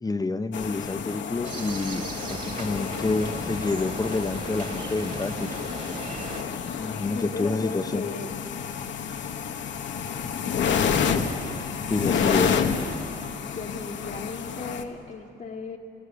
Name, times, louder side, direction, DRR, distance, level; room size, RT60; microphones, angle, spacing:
voice 1, 0.0-5.5 6.8-8.1 11.9-12.6, left 3 dB, 20° left, 10 dB, 0.9 m, -28 dB
sound 1, 0.5-14.8, left 6 dB, 70° left, 1.4 m, -29 dB
sound 2, 1.4-6.4, right 4 dB, 40° right, 2.5 m, -37 dB
voice 2, 7.1-8.3 12.0-13.1 13.5-15.8, left 4 dB, 45° left, -2 dB, 1.4 m, -36 dB
29.5 x 16.5 x 6.9 m, 3.0 s
cardioid pair, 90°, 20 cm